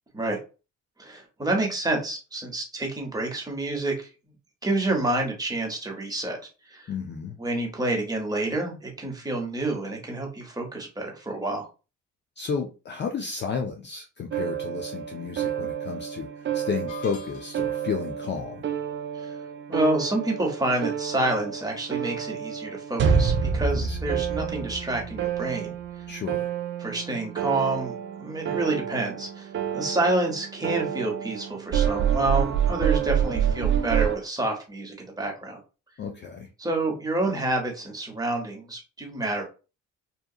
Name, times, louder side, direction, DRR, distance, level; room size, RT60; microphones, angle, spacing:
voice 1, 1.0-4.1 4.6-6.4 6.7-6.9 7.4-11.7 19.1-19.4 19.7-25.7 26.8-35.6 36.6-39.4, right 2 dB, 10° right, 0 dB, 1.0 m, -28 dB
voice 2, 6.9-7.4 12.4-18.7 23.7-24.0 26.1-26.5 36.0-36.5, left 5 dB, 40° left, 3 dB, 0.4 m, -32 dB
sound 1, 14.3-34.2, right 8 dB, 40° right, 0.4 m, -28 dB
Metal stick drops on steel wheel muffled, 16.9-17.9, left 8 dB, 85° left, 0.8 m, -44 dB
2.8 x 2.3 x 2.3 m, 0.32 s
cardioid pair, 90°, 30 cm